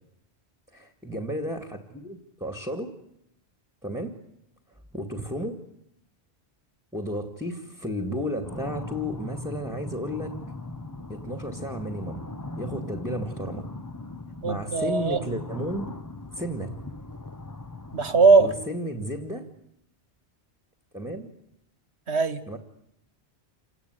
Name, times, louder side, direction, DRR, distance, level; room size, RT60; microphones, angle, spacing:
voice 1, 0.7-2.9 3.8-4.1 4.9-5.6 6.9-10.4 11.1-12.2 12.6-13.7 14.5-15.9 16.3-16.7 18.4-19.5 20.9-21.3 22.5-22.6, equal, 5° right, 7 dB, 2.2 m, -33 dB
sound 1, 8.4-18.7, left 2 dB, 20° left, 1.1 m, -39 dB
voice 2, 14.4-15.2 17.9-18.5 22.1-22.4, right 4 dB, 75° right, 13 dB, 1.9 m, -20 dB
28.0 x 18.5 x 9.8 m, 0.78 s
omnidirectional pair, 1.1 m